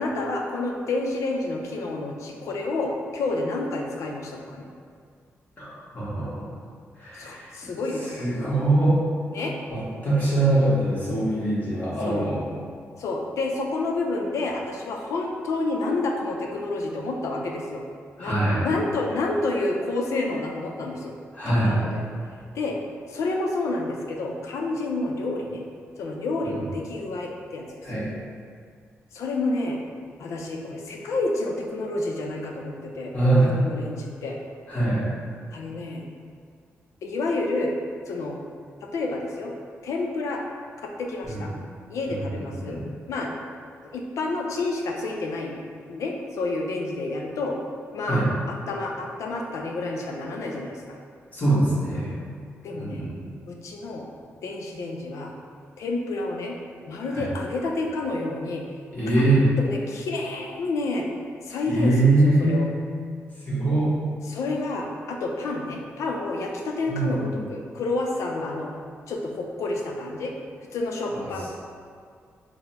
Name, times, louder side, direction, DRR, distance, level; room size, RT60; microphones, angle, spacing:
voice 1, 0.0-4.7 7.1-8.3 9.3-9.5 12.0-12.3 13.0-17.8 18.2-18.4 18.6-21.1 21.5-22.0 22.5-22.8 23.1-25.6 26.0-28.0 29.1-29.8 30.2-34.4 35.5-36.0 37.0-37.7 38.1-38.4 38.8-39.5 39.8-40.4 40.8-41.5 41.9-42.8 43.1-43.3 43.9-45.6 45.9-47.6 47.9-51.0 52.6-53.0 53.5-54.1 54.4-55.3 55.8-56.6 56.9-58.6 59.6-61.1 61.4-62.7 64.3-68.7 69.1-70.3 70.7-71.5, left 2 dB, 85° left, 0 dB, 0.5 m, -29 dB
voice 2, 5.9-6.5 7.0-7.5 8.2-9.0 9.7-12.4 18.2-18.6 21.3-21.8 26.4-26.5 27.8-28.1 33.1-33.5 34.7-35.0 41.2-41.5 42.1-42.8 48.0-48.2 51.3-52.1 52.7-53.2 57.1-57.2 58.9-59.4 61.7-62.6 63.5-63.9 66.9-67.4 71.1-71.3, right 2 dB, 35° left, -10 dB, 1.4 m, -23 dB
4.0 x 2.1 x 4.1 m, 2.1 s
wide cardioid pair, 125°, 5 cm